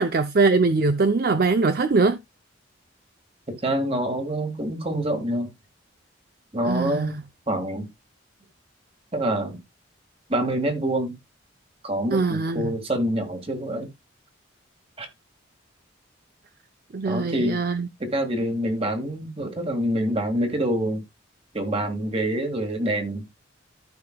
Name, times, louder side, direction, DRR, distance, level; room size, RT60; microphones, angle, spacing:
voice 1, 0.0-2.2 6.6-7.2 12.1-12.7 16.9-17.9, right 3 dB, 50° right, 0.5 m, -22 dB
voice 2, 3.5-5.5 6.5-7.1 7.5-7.9 9.1-9.6 10.3-11.2 11.8-13.9 15.0-15.1 17.1-17.6 18.0-21.0 21.5-23.3, right 1 dB, 30° right, 1.9 m, -26 dB
14.0 x 5.8 x 2.3 m
head